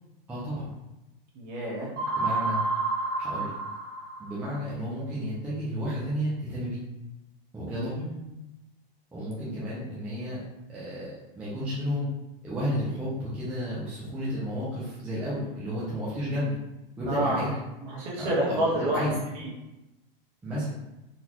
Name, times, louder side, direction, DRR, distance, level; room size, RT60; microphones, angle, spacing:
voice 1, 0.3-0.7 2.1-2.6 3.2-3.5 4.2-6.8 7.5-8.0 9.1-10.4 10.7-12.1 12.4-16.6 17.0-17.6 18.2-18.6 18.9-19.1 20.4-20.7, equal, 5° right, -9 dB, 0.3 m, -32 dB
voice 2, 1.3-1.9 7.7-8.3 17.0-17.5 17.8-19.5, right 1 dB, 45° right, -4 dB, 1.2 m, -29 dB
sound 1, 2.0-4.5, right 3 dB, 30° right, 1.4 m, -29 dB
3.9 x 2.3 x 2.9 m, 0.97 s
supercardioid pair, 155°, 29 cm